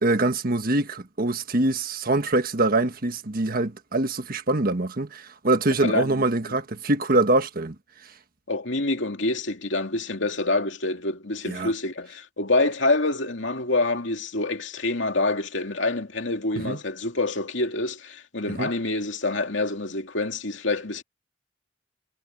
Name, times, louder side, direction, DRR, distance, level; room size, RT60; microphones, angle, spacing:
voice 1, 0.0-7.7 11.5-11.7 16.6-16.8 18.5-18.7, right 2 dB, 50° right, 1.4 m, -24 dB
voice 2, 5.8-6.6 8.5-21.0, left 2 dB, 70° left, 2.7 m, -26 dB
head